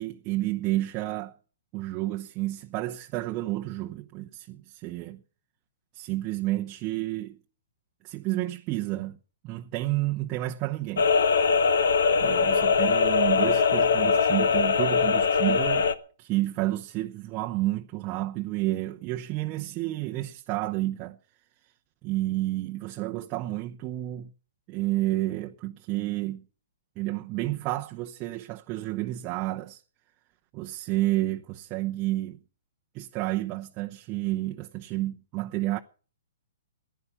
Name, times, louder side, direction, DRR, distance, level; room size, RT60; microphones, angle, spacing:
voice 1, 0.0-1.3 1.7-5.2 5.9-7.4 8.0-9.2 9.4-11.1 12.2-15.9 16.2-21.2 22.0-24.3 24.7-26.5 27.0-29.8 30.5-32.4 32.9-35.8, right 17 dB, 30° right, 0.8 m, -30 dB
sound 1, 11.0-15.9, left 5 dB, 75° left, 1.3 m, -22 dB
15.0 x 10.5 x 7.0 m
hypercardioid pair, 140°, 0 cm